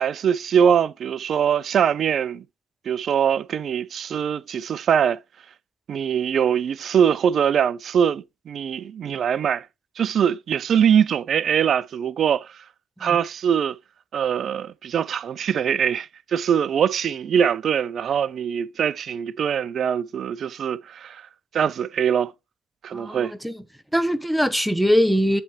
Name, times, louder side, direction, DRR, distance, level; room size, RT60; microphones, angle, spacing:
voice 1, 0.0-2.4 2.9-5.2 5.9-9.7 10.0-12.6 13.0-13.8 14.1-21.2 21.5-22.3 22.8-23.3, right 8 dB, 40° right, 0.4 m, -22 dB
voice 2, 22.9-23.6 23.9-25.4, equal, ahead, 0.7 m, -22 dB
7.1 x 3.3 x 4.5 m
hypercardioid pair, 65°, 0 cm